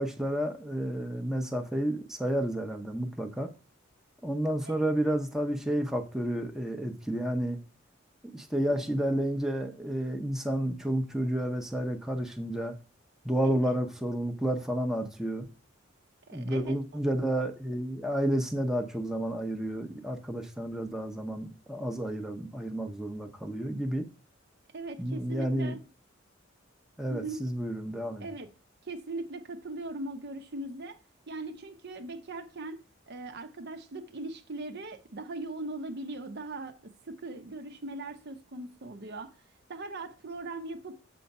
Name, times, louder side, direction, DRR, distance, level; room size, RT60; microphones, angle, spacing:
voice 1, 0.0-3.5 4.2-7.6 8.3-12.8 13.2-15.5 16.3-24.1 25.0-25.7 27.0-28.2, right 1 dB, ahead, 0.7 m, -31 dB
voice 2, 16.3-17.0 24.7-25.9 27.1-27.4 28.2-28.5 28.8-31.0 31.3-39.4 39.7-41.0, right 2 dB, 55° right, 0.7 m, -40 dB
6.9 x 4.5 x 5.3 m
head